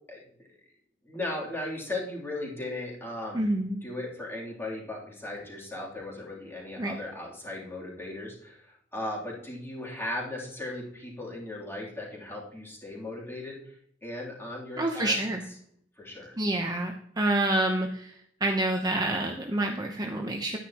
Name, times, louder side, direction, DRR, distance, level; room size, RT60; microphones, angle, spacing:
voice 1, 0.1-0.6 1.0-3.5 3.8-13.7 14.0-15.1 16.0-16.3, left 1 dB, 15° left, -4 dB, 3.1 m, -37 dB
voice 2, 3.3-3.8 6.8-7.0 14.8-15.4 16.4-18.1 18.4-20.6, right 1 dB, 20° right, 2 dB, 0.8 m, -27 dB
10.5 x 9.8 x 2.9 m, 0.67 s
head